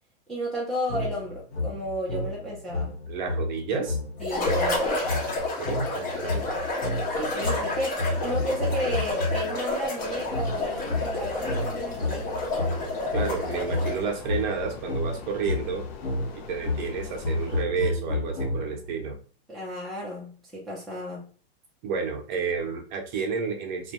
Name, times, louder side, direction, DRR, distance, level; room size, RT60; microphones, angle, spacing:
voice 1, 0.3-3.0 4.2-4.9 7.1-12.4 19.5-21.3, equal, ahead, -7 dB, 0.5 m, -33 dB
sound 1, 0.9-9.6 10.3-18.9, left 2 dB, 85° left, 1.2 m, -31 dB
voice 2, 3.1-4.0 5.6-6.4 13.1-15.9 16.3-19.2 21.8-23.9, right 5 dB, 45° right, 3 dB, 0.7 m, -30 dB
sound 2, 4.2-14.1, left 2 dB, 25° left, 0.9 m, -30 dB
Air conditioner, 9.9-17.6, left 6 dB, 70° left, 0.6 m, -43 dB
2.5 x 2.2 x 2.9 m, 0.40 s
supercardioid pair, 150°, 32 cm